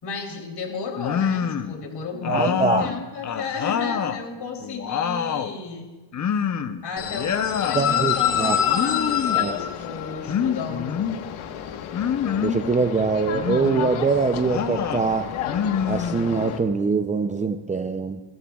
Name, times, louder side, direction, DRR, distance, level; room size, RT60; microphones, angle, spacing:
voice 1, 0.0-5.9 6.8-11.0, left 4 dB, 50° left, 2 dB, 3.3 m, -33 dB
sound 1, 1.0-1.8 2.2-4.2 4.6-5.6 6.1-6.8 7.1-7.8 8.7-9.4 10.3-11.2 11.9-12.6 13.3-13.9 14.4-15.1 15.4-16.6, left 8 dB, 35° left, 0.8 m, -26 dB
voice 2, 2.3-2.9 7.7-8.6 9.3-9.6 12.4-15.3 15.9-18.2, right 4 dB, 15° right, 7 dB, 0.5 m, -23 dB
sound 2, 7.0-16.6, left 10 dB, 75° left, 1.4 m, -28 dB
28.0 x 14.5 x 2.4 m, 1.2 s
cardioid pair, 110°, 50 cm